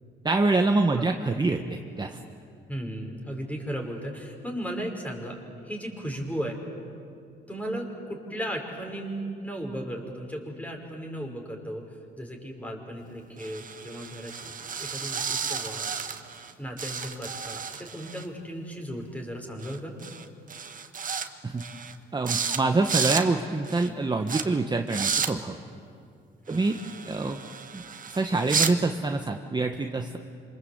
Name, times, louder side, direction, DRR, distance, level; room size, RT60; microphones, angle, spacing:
voice 1, 0.2-2.2 21.4-21.6 22.1-25.6 26.5-26.8 27.1-27.4 27.7-30.2, right 3 dB, 20° right, 4 dB, 1.3 m, -26 dB
voice 2, 2.7-5.4 5.6-6.6 7.5-11.8 12.2-16.0 16.6-19.9 26.5-26.6, equal, 5° left, 1 dB, 5.8 m, -36 dB
sound 1, 13.4-16.5 16.8-18.3 19.6-19.8 20.0-20.3 20.5-21.3 21.6-21.9 22.3-22.6 22.8-23.2 23.7-23.9 24.3-24.4 24.9-25.3 26.5-28.7, right 6 dB, 40° right, 1.6 m, -32 dB
27.0 x 25.5 x 8.2 m, 2.4 s
cardioid pair, 90°, 20 cm